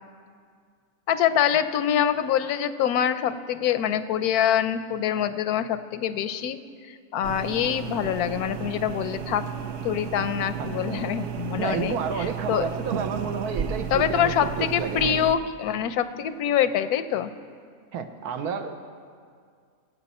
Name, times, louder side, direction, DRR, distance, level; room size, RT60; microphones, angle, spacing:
voice 1, 1.1-6.6 7.1-9.5 9.8-12.7 12.9-13.0 13.9-17.3, left 9 dB, 85° left, 12 dB, 1.1 m, -25 dB
sound 1, 7.2-15.3, right 7 dB, 60° right, 0.8 m, -33 dB
voice 2, 10.6-11.0 11.6-15.2 17.9-18.7, right 6 dB, 85° right, 7 dB, 1.4 m, -31 dB
22.5 x 8.1 x 4.2 m, 2.1 s
omnidirectional pair, 1.6 m